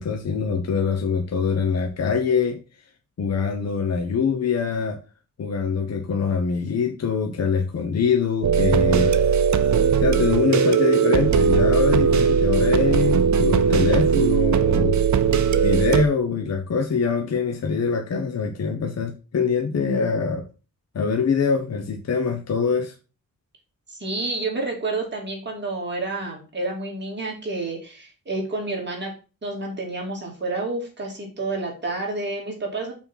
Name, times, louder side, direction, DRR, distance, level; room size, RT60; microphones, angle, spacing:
voice 1, 0.0-2.6 3.2-5.0 5.4-9.2 10.0-15.0 15.6-20.5 20.9-22.9, left 5 dB, 50° left, 0.9 m, -24 dB
sound 1, 8.4-16.0, right 6 dB, 55° right, 0.7 m, -19 dB
voice 2, 23.9-29.1 29.4-32.9, right 2 dB, 30° right, 2.4 m, -29 dB
5.9 x 4.4 x 5.5 m
wide cardioid pair, 170°, 34 cm